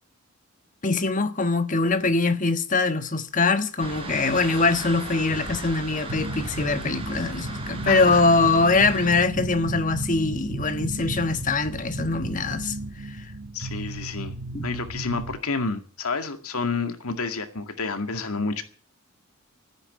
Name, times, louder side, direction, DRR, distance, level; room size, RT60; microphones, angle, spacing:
voice 1, 0.8-12.7 14.5-14.6, left 3 dB, 35° left, 1.3 m, -23 dB
sound 1, 3.8-9.1, right 2 dB, 25° right, 4.7 m, -37 dB
sound 2, 6.1-15.4, right 1 dB, 70° right, 1.2 m, -34 dB
voice 2, 7.9-8.3 13.5-14.3 14.6-18.6, left 4 dB, 80° left, 2.1 m, -29 dB
14.0 x 9.9 x 9.8 m
head